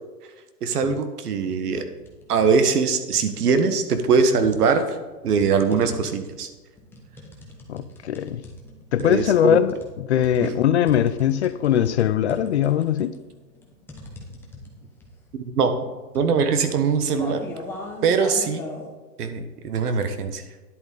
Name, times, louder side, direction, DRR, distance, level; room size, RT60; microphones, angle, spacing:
voice 1, 0.6-1.8 2.3-5.0 5.2-6.5 9.0-9.6 10.4-10.5 15.4-15.7 16.1-17.5 18.0-18.6 19.2-20.4, right 5 dB, 70° right, 8 dB, 1.5 m, -22 dB
sound 1, 1.9-2.3 2.7-3.6 4.2-18.9, left 2 dB, 5° left, 0.9 m, -40 dB
voice 2, 7.7-8.4 8.9-13.1, left 10 dB, 45° left, 13 dB, 0.5 m, -21 dB
10.5 x 8.5 x 3.9 m, 1.3 s
hypercardioid pair, 150°, 47 cm